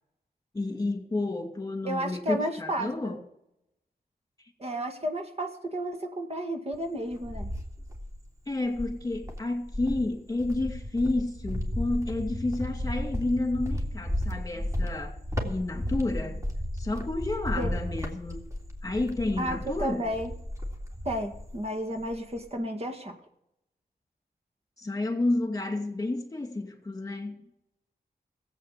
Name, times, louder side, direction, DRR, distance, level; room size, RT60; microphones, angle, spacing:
voice 1, 0.5-3.2 8.5-15.2 15.4-16.4 16.7-18.4 18.8-20.0 24.8-27.4, left 2 dB, 20° left, 2.4 m, -30 dB
voice 2, 1.8-3.2 4.6-7.5 17.6-17.7 19.4-20.3 21.0-23.1, right 1 dB, 40° right, 2.0 m, -32 dB
Cricket, 6.7-8.3 8.7-21.7 22.0-22.5, left 1 dB, 20° right, 3.2 m, -34 dB
16.0 x 8.3 x 7.4 m
cardioid pair, 65°, 16 cm